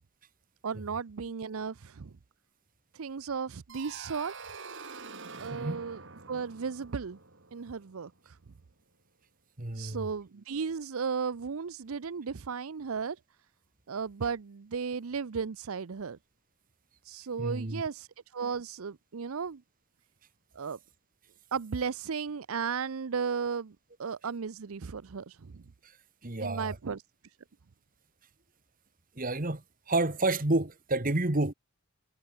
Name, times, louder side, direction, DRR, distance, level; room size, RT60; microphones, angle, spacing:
voice 1, 0.6-2.1 2.9-4.3 5.4-6.0 6.3-7.2 7.5-8.4 9.7-13.2 13.9-16.2 17.0-19.6 20.5-20.8 21.5-25.6 26.4-27.0, right 5 dB, 70° right, 0.6 m, -35 dB
sound 1, 3.7-8.4, right 4 dB, 55° right, 3.3 m, -46 dB
voice 2, 5.5-5.8 9.6-10.1 17.4-17.8 25.8-26.0 26.2-26.8 29.1-31.5, right 2 dB, 40° right, 1.6 m, -30 dB
head